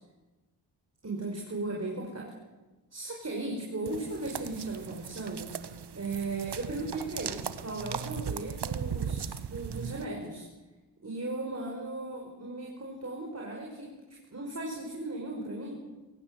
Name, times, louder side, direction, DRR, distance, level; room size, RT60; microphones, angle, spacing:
voice 1, 1.0-2.3 2.9-5.5 5.9-10.5 11.0-15.8, right 2 dB, 35° right, -1 dB, 5.5 m, -37 dB
sound 1, 3.9-10.0, right 8 dB, 65° right, 1.4 m, -38 dB
23.0 x 17.5 x 7.9 m, 1.2 s
cardioid pair, 60°, 44 cm